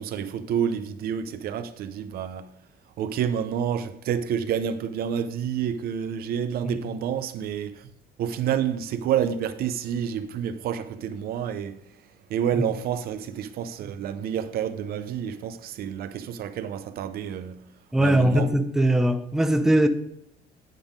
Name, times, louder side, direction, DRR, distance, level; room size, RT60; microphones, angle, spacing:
voice 1, 0.0-2.5 3.0-7.9 8.2-11.8 12.3-17.6 18.0-18.5, right 8 dB, 65° right, 0.5 m, -29 dB
voice 2, 17.9-19.9, right 1 dB, 5° right, 0.5 m, -21 dB
9.3 x 3.5 x 5.0 m
cardioid pair, 110°, 17 cm